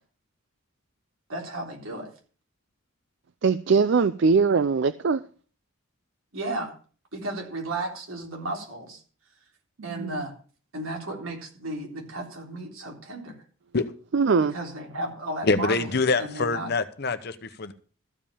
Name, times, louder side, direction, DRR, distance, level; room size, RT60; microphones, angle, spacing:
voice 1, 1.3-2.1 6.3-6.7 7.1-9.0 9.8-10.3 10.7-13.4 14.5-15.8 16.2-16.7, right 2 dB, 90° right, 3.6 m, -34 dB
voice 2, 3.4-5.2 10.0-10.2 14.1-14.5, right 5 dB, 60° right, 0.4 m, -21 dB
voice 3, 15.4-17.7, left 3 dB, 50° left, 0.9 m, -25 dB
14.0 x 5.3 x 7.1 m
head